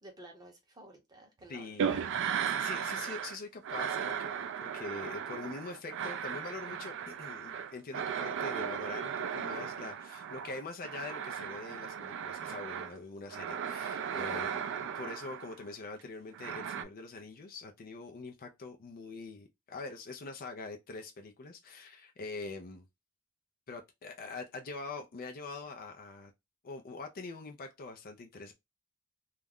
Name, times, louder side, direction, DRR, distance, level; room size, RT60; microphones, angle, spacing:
voice 1, 0.0-1.9 14.2-14.5, right 1 dB, 20° right, 0.8 m, -53 dB
voice 2, 1.5-2.0 2.4-4.3 4.6-22.9 23.7-26.3 26.6-28.5, left 3 dB, 40° left, 0.4 m, -44 dB
sound 1, 1.8-3.4 3.6-13.0 13.3-15.6 16.3-16.8, right 8 dB, 60° right, 0.3 m, -36 dB
2.3 x 2.1 x 3.4 m
head